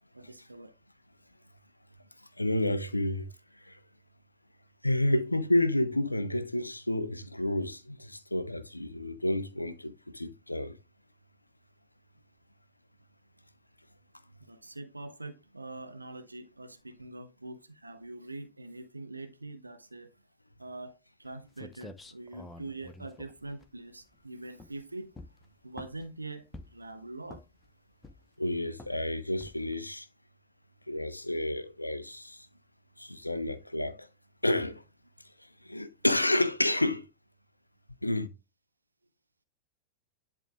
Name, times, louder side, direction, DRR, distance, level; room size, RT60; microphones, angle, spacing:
voice 1, 0.1-0.7 14.4-20.1 20.6-25.1 25.6-27.5, right 2 dB, 80° right, 0.7 m, -44 dB
voice 2, 2.4-3.3 3.6-3.8 4.8-10.8 28.4-30.1 30.9-32.5 33.0-34.1 34.4-34.8 35.6-37.1 38.0-38.3, left 1 dB, 85° left, 0.6 m, -30 dB
sound 1, 21.3-21.4 21.6-24.2 24.5-24.8 25.1-26.1 26.5-26.9 27.3-27.7 28.0-28.4 28.8-29.0 29.4-29.7, left 2 dB, 15° left, 0.8 m, -48 dB
10.5 x 3.5 x 3.6 m
figure-of-eight pair, 90°, 0 cm